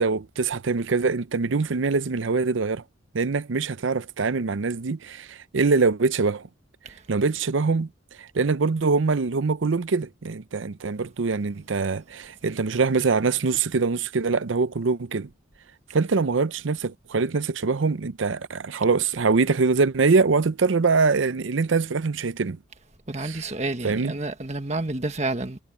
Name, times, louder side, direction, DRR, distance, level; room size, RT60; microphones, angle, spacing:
voice 1, 0.0-2.8 3.1-6.5 7.1-7.9 8.2-15.3 15.9-22.6 23.2-23.5 23.8-24.1, right 4 dB, 75° right, 0.6 m, -23 dB
voice 2, 23.1-25.6, right 2 dB, 35° right, 1.6 m, -29 dB
head